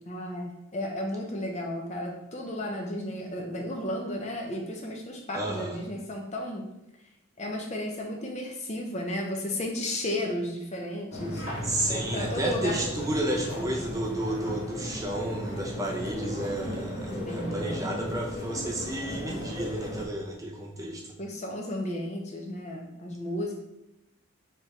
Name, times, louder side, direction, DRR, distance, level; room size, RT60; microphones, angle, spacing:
voice 1, 0.1-6.6 7.4-11.4 11.9-12.8 17.3-17.8 21.2-23.6, left 1 dB, 30° left, 1 dB, 0.6 m, -33 dB
voice 2, 5.3-5.8 11.6-21.0, right 1 dB, 15° right, 0 dB, 0.4 m, -32 dB
sound 1, 11.1-20.1, left 1 dB, 55° left, 1.4 m, -35 dB
4.4 x 3.5 x 3.0 m, 0.87 s
head